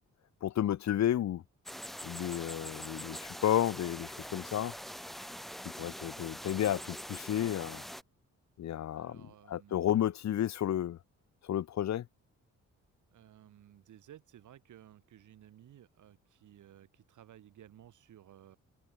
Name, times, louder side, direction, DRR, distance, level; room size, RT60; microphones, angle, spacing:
voice 1, 0.4-1.4 2.0-4.7 5.8-7.8 8.6-9.2 9.5-11.0 11.4-12.0, left 11 dB, 60° left, 1.1 m, -32 dB
sound 1, 1.7-8.0, equal, ahead, 0.5 m, -44 dB
voice 2, 8.9-10.1 13.1-18.6, right 11 dB, 75° right, 4.9 m, -56 dB
cardioid pair, 100°, 30 cm